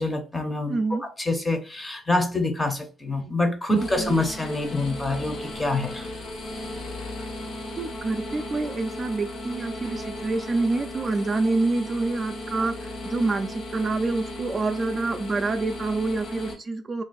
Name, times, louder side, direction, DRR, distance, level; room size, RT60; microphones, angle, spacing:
voice 1, 0.0-6.1, left 2 dB, 15° left, 0.7 m, -26 dB
voice 2, 0.7-1.0 4.0-4.2 7.8-17.0, right 3 dB, 30° right, 0.4 m, -27 dB
sound 1, 3.7-16.5, left 1 dB, 75° left, 1.1 m, -36 dB
2.9 x 2.5 x 3.9 m
cardioid pair, 105°, 0 cm